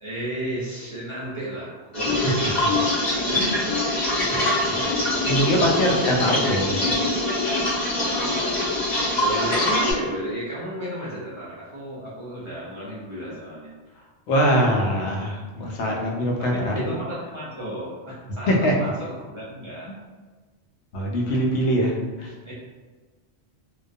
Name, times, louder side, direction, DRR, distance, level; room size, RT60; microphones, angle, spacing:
voice 1, 0.0-3.8 9.1-13.7 16.4-19.9 22.4-22.5, equal, 40° right, -8 dB, 0.5 m, -33 dB
sound 1, 1.9-9.9, left 1 dB, 45° left, 0.8 m, -23 dB
voice 2, 4.3-6.8 14.3-16.7 18.5-18.7 20.9-22.3, equal, 90° left, -1 dB, 0.9 m, -23 dB
2.2 x 2.2 x 2.6 m, 1.3 s
omnidirectional pair, 1.1 m